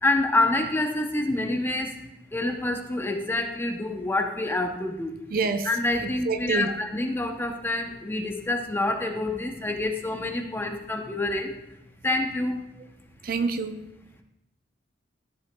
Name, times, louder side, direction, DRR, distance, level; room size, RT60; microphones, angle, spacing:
voice 1, 0.0-2.0 2.3-5.1 5.7-11.5 12.0-12.6, left 2 dB, 15° left, 4 dB, 0.7 m, -27 dB
voice 2, 5.3-6.8 13.2-13.9, right 4 dB, 55° right, 8 dB, 0.5 m, -28 dB
13.5 x 6.7 x 2.2 m, 0.90 s
head